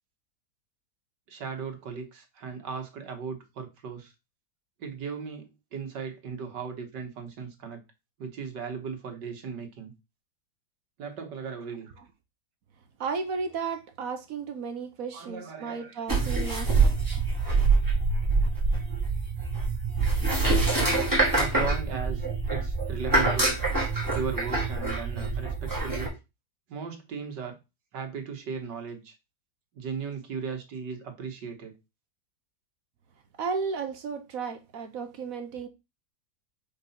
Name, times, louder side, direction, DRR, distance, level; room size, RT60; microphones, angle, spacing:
voice 1, 1.3-4.1 4.8-7.8 8.2-9.9 11.0-11.9 15.1-15.9 16.2-16.4 18.9-19.1 21.3-23.6 24.1-26.1 26.7-27.6 27.9-29.2 29.7-31.7, right 6 dB, 80° right, 2.0 m, -37 dB
voice 2, 13.0-16.9 33.4-35.7, right 5 dB, 60° right, 1.1 m, -34 dB
sound 1, 16.1-26.1, right 3 dB, 10° right, 2.3 m, -25 dB
5.3 x 3.9 x 5.7 m
omnidirectional pair, 1.8 m